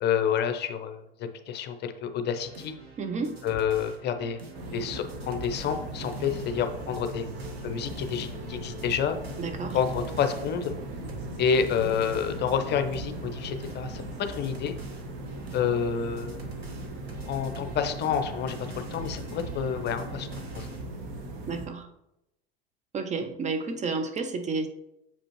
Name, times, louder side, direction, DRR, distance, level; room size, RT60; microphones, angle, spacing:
voice 1, 0.0-2.7 3.4-4.4 4.7-7.2 7.6-9.2 9.7-10.7 11.4-14.7 15.5-16.4 17.3-20.7, left 7 dB, 35° left, 0.7 m, -29 dB
sound 1, 2.3-20.8, right 3 dB, 90° right, 0.9 m, -46 dB
voice 2, 3.0-3.4 9.4-9.8 21.5-21.9 22.9-24.7, right 4 dB, 25° right, 0.5 m, -31 dB
sound 2, 4.5-21.7, right 1 dB, 60° right, 1.3 m, -38 dB
7.1 x 5.1 x 3.0 m
figure-of-eight pair, 75°, 30 cm